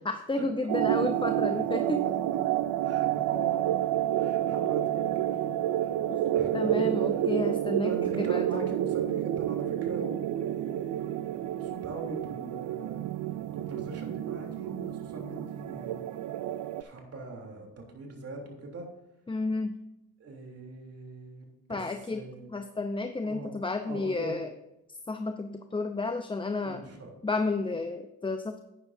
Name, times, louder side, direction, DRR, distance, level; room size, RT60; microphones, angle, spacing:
voice 1, 0.0-2.0 6.1-7.9 8.2-8.7 19.3-19.7 21.7-22.2 22.5-24.5 25.1-26.8 27.2-28.6, left 3 dB, 15° left, 7 dB, 0.7 m, -32 dB
sound 1, 0.7-16.8, right 12 dB, 80° right, 0.5 m, -29 dB
voice 2, 2.8-3.9 4.1-6.0 6.3-7.2 7.8-13.0 13.5-16.0 16.8-18.8 20.2-22.5 23.2-23.5 23.8-24.4 26.6-27.1, right 2 dB, 55° right, 1 dB, 3.3 m, -42 dB
11.5 x 9.6 x 2.7 m, 0.94 s
cardioid pair, 90°, 30 cm